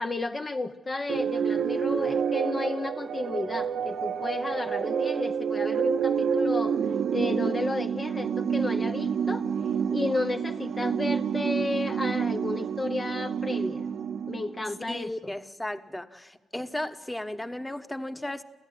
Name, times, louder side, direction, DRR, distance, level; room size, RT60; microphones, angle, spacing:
voice 1, 0.0-6.8 7.1-9.5 9.9-13.9 14.3-15.3, left 2 dB, 35° left, 6 dB, 0.9 m, -32 dB
sound 1, 1.1-14.8, right 7 dB, 70° right, 0.9 m, -28 dB
voice 2, 14.9-18.4, left 1 dB, 10° left, 10 dB, 1.3 m, -35 dB
29.0 x 14.5 x 9.6 m, 1.3 s
cardioid pair, 70°, 0 cm